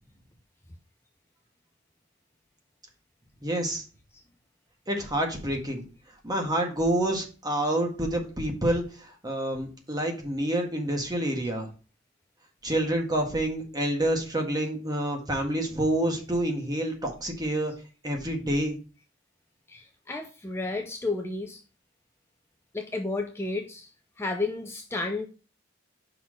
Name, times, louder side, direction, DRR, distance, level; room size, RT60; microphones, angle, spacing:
voice 1, 3.4-3.8 4.9-5.8 6.2-11.7 12.6-17.7 18.0-18.8, right 1 dB, 20° right, 1 dB, 1.6 m, -28 dB
voice 2, 19.7-21.6 22.7-23.9 24.2-25.3, left 3 dB, 15° left, 4 dB, 0.5 m, -32 dB
5.7 x 4.1 x 6.2 m, 0.35 s
head